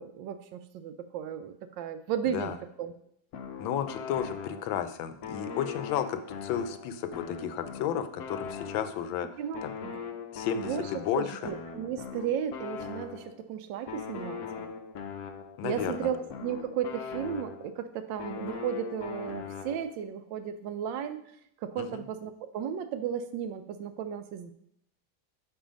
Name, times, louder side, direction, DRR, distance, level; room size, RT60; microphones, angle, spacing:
voice 1, 0.0-2.5 2.8-2.9 9.4-10.0 10.6-10.9 11.2-14.7 15.6-21.3 21.6-24.5, right 8 dB, 75° right, 10 dB, 1.2 m, -34 dB
sound 1, 3.3-4.9 5.2-9.2 9.5-13.4 13.9-17.8 18.2-20.0, left 6 dB, 65° left, 1.0 m, -40 dB
voice 2, 3.6-9.3 9.6-9.7 10.3-11.5 15.6-16.1 21.8-22.0, left 9 dB, 80° left, 10 dB, 1.4 m, -33 dB
5.5 x 4.8 x 5.1 m, 0.71 s
omnidirectional pair, 2.1 m